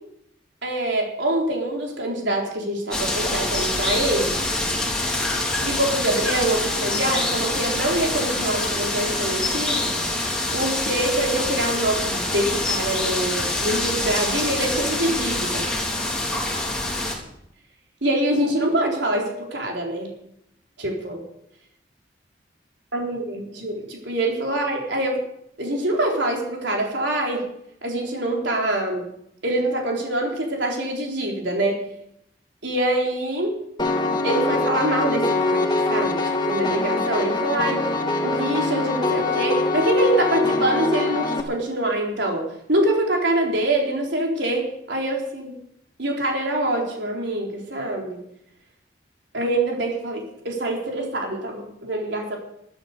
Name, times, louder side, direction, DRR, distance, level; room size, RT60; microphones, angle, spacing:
voice 1, 0.6-4.4 5.6-9.9 10.5-15.7 18.0-20.1 20.8-21.2 22.9-25.2 25.6-27.5 27.8-29.1 29.4-31.8 32.6-33.6 34.2-37.9 38.2-42.4 42.7-45.6 46.0-48.2 49.3-52.4, right 1 dB, 80° right, 0 dB, 3.9 m, -25 dB
sound 1, 2.9-17.1, left 2 dB, 5° left, 3.9 m, -25 dB
Piano, 33.8-41.4, left 2 dB, 25° left, 1.6 m, -23 dB
13.0 x 12.5 x 6.8 m, 0.76 s
head